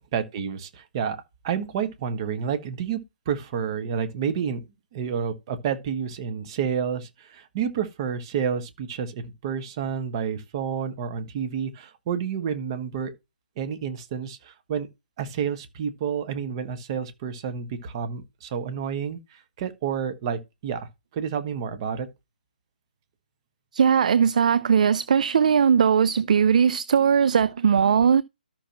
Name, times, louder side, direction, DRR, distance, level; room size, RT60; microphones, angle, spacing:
voice 1, 0.1-1.2 1.4-3.0 3.2-4.6 4.9-13.1 13.6-14.9 15.2-22.1, right 7 dB, 30° right, 1.5 m, -29 dB
voice 2, 23.7-28.2, right 7 dB, 50° right, 0.4 m, -19 dB
13.0 x 5.9 x 2.9 m
figure-of-eight pair, 140°, 5 cm